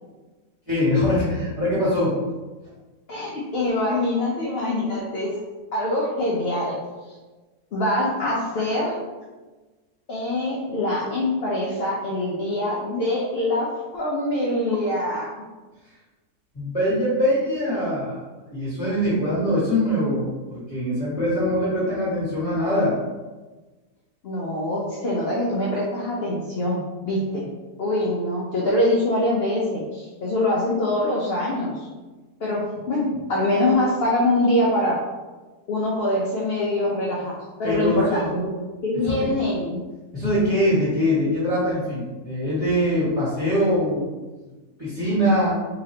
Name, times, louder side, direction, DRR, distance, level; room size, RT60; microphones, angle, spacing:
voice 1, 0.7-2.2 16.5-18.2 18.5-23.0 37.6-38.4 39.0-39.3 40.1-44.0 44.8-45.5, equal, 20° left, -12 dB, 1.6 m, -23 dB
voice 2, 3.1-5.3 5.7-6.8 7.1-7.2 7.7-9.0 10.1-13.7 13.9-15.3 24.2-27.4 27.8-31.9 32.4-34.9 35.7-37.3 37.6-38.5 38.8-39.8, left 1 dB, 55° left, -5 dB, 0.7 m, -24 dB
4.1 x 3.0 x 2.8 m, 1.3 s
omnidirectional pair, 1.7 m